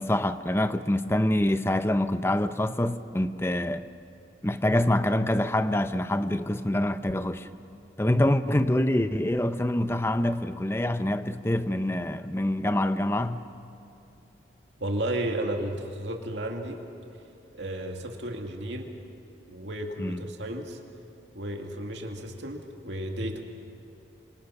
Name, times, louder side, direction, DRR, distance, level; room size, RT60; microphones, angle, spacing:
voice 1, 0.0-3.8 4.4-7.5 8.0-13.4 20.0-20.2, left 1 dB, 15° left, 0.6 m, -25 dB
voice 2, 14.8-16.8 17.5-18.9 19.5-20.8 21.3-23.4, right 1 dB, 65° right, 2.4 m, -33 dB
27.5 x 26.0 x 5.8 m
head